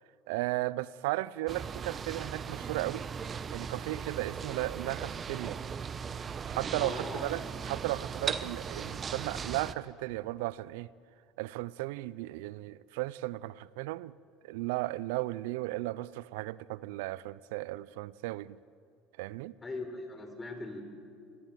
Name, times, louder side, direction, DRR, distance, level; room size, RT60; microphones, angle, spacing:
voice 1, 0.3-3.1 3.5-5.6 6.5-10.9 11.4-14.1 14.4-18.6 19.2-19.5, right 18 dB, 70° right, 0.7 m, -35 dB
sound 1, 1.5-9.7, right 6 dB, 35° right, 1.2 m, -38 dB
voice 2, 6.8-7.2 19.6-20.8, left 2 dB, 20° left, 5.1 m, -40 dB
28.0 x 22.5 x 7.6 m
hypercardioid pair, 75°, 0 cm